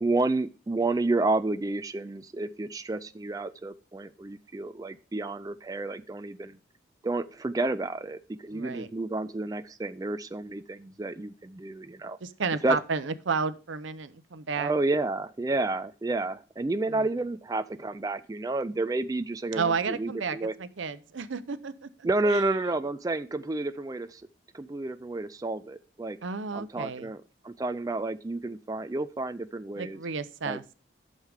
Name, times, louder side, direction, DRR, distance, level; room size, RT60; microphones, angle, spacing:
voice 1, 0.0-6.6 7.0-12.2 12.6-12.8 14.6-20.5 22.0-24.2 24.5-26.2 26.5-30.0 30.5-30.6, right 2 dB, 20° right, 11 dB, 0.3 m, -30 dB
voice 2, 8.5-8.9 12.2-14.7 16.9-17.1 19.5-22.4 26.2-27.1 29.8-30.6, right 5 dB, 85° right, 13 dB, 0.7 m, -32 dB
11.5 x 6.5 x 3.5 m, 0.36 s
head